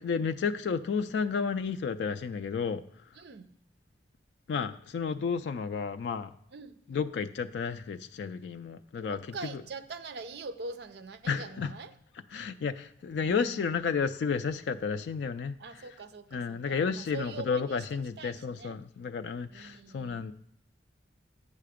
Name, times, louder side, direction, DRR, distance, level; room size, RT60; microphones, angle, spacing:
voice 1, 0.0-2.8 4.5-6.3 6.9-9.2 9.5-9.6 11.3-11.7 12.3-15.8 16.3-20.3, left 5 dB, 65° left, 9 dB, 0.3 m, -32 dB
voice 2, 3.2-3.5 6.5-6.8 9.0-11.9 13.2-13.9 15.6-17.8 18.2-18.8 19.5-20.3, right 4 dB, 60° right, 11 dB, 0.5 m, -43 dB
8.4 x 5.7 x 5.0 m, 0.72 s
head